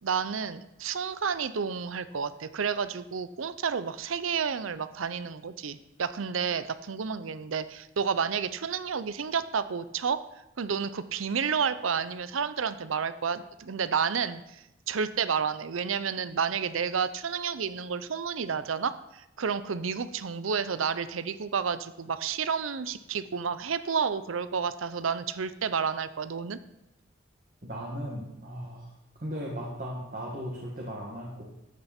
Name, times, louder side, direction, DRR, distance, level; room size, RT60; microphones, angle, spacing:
voice 1, 0.0-10.2 10.6-26.6, right 6 dB, 85° right, 14 dB, 0.6 m, -30 dB
voice 2, 27.6-28.9 29.2-31.4, equal, 40° right, -3 dB, 1.9 m, -37 dB
14.0 x 8.8 x 4.4 m, 0.87 s
head